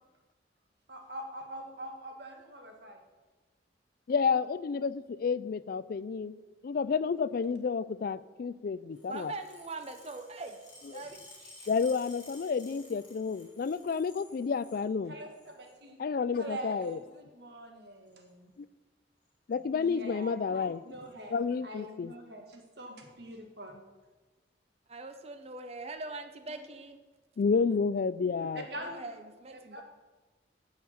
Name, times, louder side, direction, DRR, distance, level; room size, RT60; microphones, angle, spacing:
voice 1, 0.9-3.0 15.1-16.0 16.4-18.5 19.8-21.3 21.6-23.8 28.5-29.0 29.7-29.8, right 1 dB, 65° right, 3 dB, 1.6 m, -44 dB
voice 2, 4.1-6.3 6.6-9.3 10.9-11.0 11.7-15.1 16.0-17.0 19.5-20.8 21.3-22.1 27.4-28.6, left 5 dB, 50° left, 17 dB, 0.3 m, -30 dB
sound 1, 8.9-14.8 15.2-15.8 16.5-17.0 18.1-18.3 19.3-19.5 19.8-19.9 20.2-20.3 20.6-21.1 21.7-21.8 22.7-22.8, left 2 dB, 25° left, 3.3 m, -55 dB
voice 3, 9.1-10.6 10.9-11.7 24.9-27.0 28.8-29.8, right 3 dB, 35° right, 8 dB, 0.7 m, -42 dB
9.9 x 5.7 x 7.6 m, 1.2 s
head